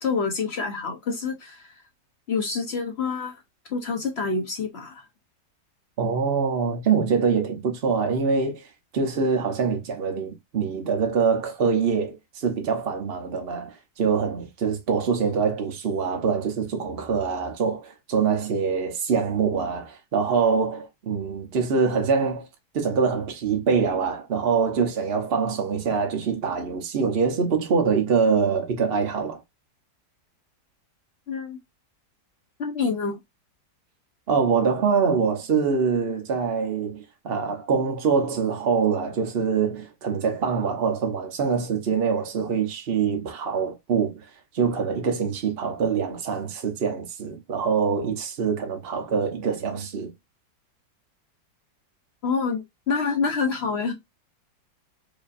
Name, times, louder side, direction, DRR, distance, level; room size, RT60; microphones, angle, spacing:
voice 1, 0.0-1.8 2.3-3.4 3.7-5.0 31.3-31.6 32.6-33.2 52.2-53.9, left 5 dB, 50° left, 0.8 m, -27 dB
voice 2, 6.0-8.7 8.9-22.5 22.7-29.4 34.3-44.3 44.5-50.1, right 5 dB, 50° right, 0.7 m, -24 dB
4.9 x 2.7 x 2.5 m
omnidirectional pair, 2.0 m